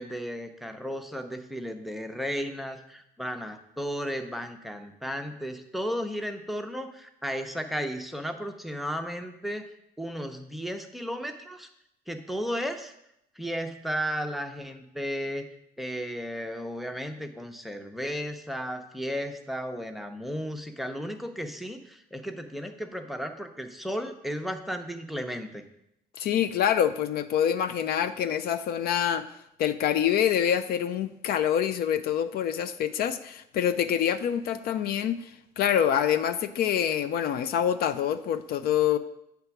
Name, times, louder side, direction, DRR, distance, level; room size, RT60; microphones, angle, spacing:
voice 1, 0.0-9.6 10.0-11.7 12.1-12.9 13.4-15.5 15.8-25.6, equal, ahead, 6 dB, 0.6 m, -34 dB
voice 2, 26.2-29.3 29.6-35.3 35.6-39.0, left 9 dB, 65° left, 11 dB, 0.4 m, -26 dB
7.9 x 3.4 x 5.9 m, 0.79 s
cardioid pair, 110°, 17 cm